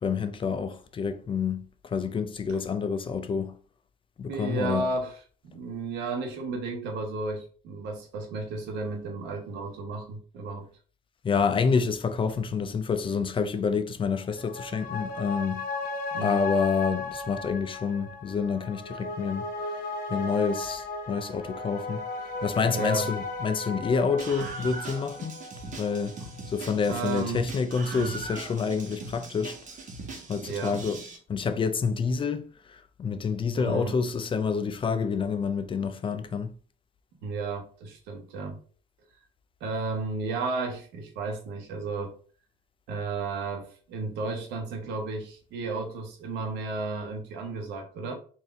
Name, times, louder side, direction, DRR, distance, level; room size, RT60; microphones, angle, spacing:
voice 1, 0.0-3.5 4.2-4.9 11.2-15.6 16.2-25.3 25.8-26.2 26.5-29.6 30.3-31.0 31.3-36.5, left 5 dB, 30° left, 0.4 m, -28 dB
voice 2, 4.3-5.2 5.4-10.7 16.1-16.4 22.6-23.1 26.9-27.4 28.0-28.1 30.5-30.8 33.6-34.0 37.2-38.6 39.6-42.1 42.9-48.1, right 3 dB, 90° right, 1.1 m, -33 dB
sound 1, 14.2-27.1 27.4-27.5, left 2 dB, 60° left, 1.0 m, -36 dB
Screaming, 24.2-31.2, right 3 dB, 45° right, 1.0 m, -40 dB
4.1 x 2.6 x 3.5 m
cardioid pair, 110°, 17 cm